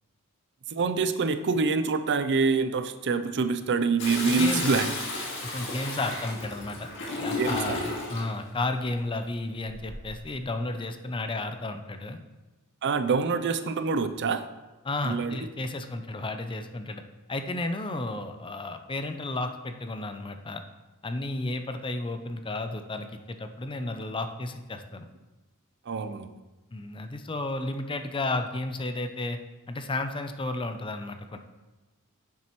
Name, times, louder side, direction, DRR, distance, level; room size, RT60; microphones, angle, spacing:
voice 1, 0.7-4.9 7.4-7.8 12.8-14.5 15.0-15.4 25.9-26.3, right 4 dB, 55° right, 10 dB, 0.5 m, -26 dB
Toilet flush, 4.0-8.3 9.7-10.2, left 2 dB, 60° left, 2.1 m, -33 dB
voice 2, 4.3-4.7 5.4-6.9 7.2-12.2 14.8-17.0 17.3-20.6 21.0-25.1 26.7-29.4 29.7-31.4, left 2 dB, 25° left, 7 dB, 0.5 m, -33 dB
9.9 x 7.2 x 3.1 m, 1.1 s
head